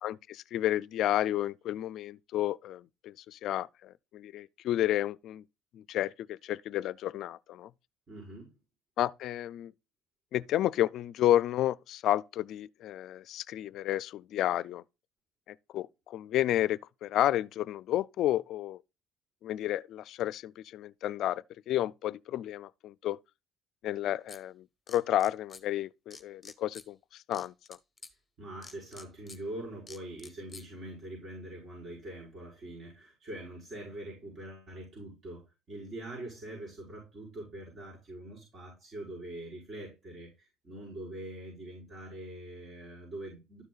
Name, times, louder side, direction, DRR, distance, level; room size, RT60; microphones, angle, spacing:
voice 1, 0.0-5.4 5.7-7.7 9.0-9.7 10.3-14.8 15.5-18.8 19.4-23.2 23.8-27.5, left 13 dB, 65° left, 0.4 m, -31 dB
voice 2, 8.1-8.5 28.4-35.4 35.7-43.6, right 1 dB, 45° right, 5.5 m, -43 dB
sound 1, 24.3-24.4 24.9-25.6 26.1-26.9 27.3-28.1 28.6-29.4 29.9-30.7, left 3 dB, 15° left, 1.2 m, -48 dB
12.5 x 6.5 x 2.4 m
cardioid pair, 95°, 0 cm